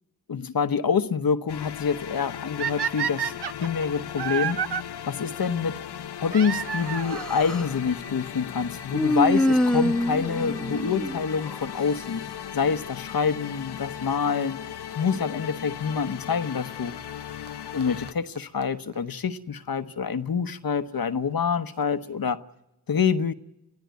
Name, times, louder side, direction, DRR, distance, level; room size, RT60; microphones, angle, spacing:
voice 1, 0.3-3.3 3.6-4.6 5.0-5.8 6.2-12.3 12.5-14.6 14.9-16.9 17.7-22.4 22.9-23.3, left 6 dB, 60° left, 1.1 m, -26 dB
sound 1, 1.5-18.1, left 10 dB, 85° left, 0.7 m, -37 dB
sound 2, 2.6-4.8 6.3-7.3 8.3-8.4 9.1-9.2 9.4-9.5 11.3-11.6 14.4-14.5 15.6-15.7 17.1-17.2 17.5-17.6 17.8-17.9 18.1-18.2 18.4-18.5 18.6-18.7 18.9-19.0, right 9 dB, 80° right, 0.7 m, -30 dB
Human voice, 6.8-7.8 8.9-11.7, left 1 dB, ahead, 1.2 m, -25 dB
24.0 x 14.5 x 9.4 m
cardioid pair, 45°, 39 cm